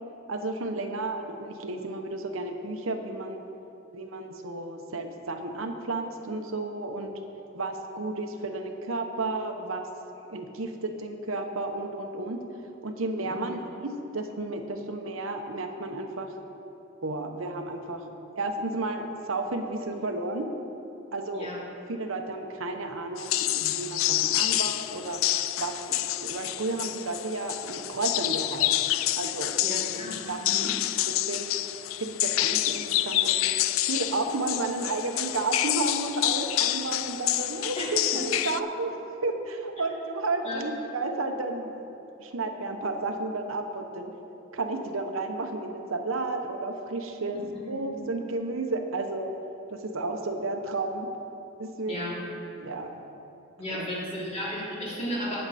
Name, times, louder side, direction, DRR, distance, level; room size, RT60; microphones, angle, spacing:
voice 1, 0.3-3.4 3.9-7.1 7.5-9.9 10.3-12.4 12.8-16.3 17.0-18.1 18.4-20.5 21.1-21.5 21.9-25.2 25.6-28.7 29.1-30.7 31.3-31.6 32.0-33.4 33.9-39.0 39.2-41.9 42.2-44.1 44.5-47.4 47.7-49.3 49.7-51.1 51.6-52.3 52.6-52.9 53.7-53.9, right 2 dB, 85° right, 4 dB, 0.9 m, -32 dB
sound 1, 23.2-38.6, left 14 dB, 80° left, 0.3 m, -28 dB
voice 2, 29.6-30.7 37.8-37.9 40.4-40.6 47.5-48.0 51.9-52.2 53.6-55.4, left 1 dB, 30° left, -7 dB, 3.0 m, -34 dB
19.0 x 6.7 x 4.2 m, 2.9 s
head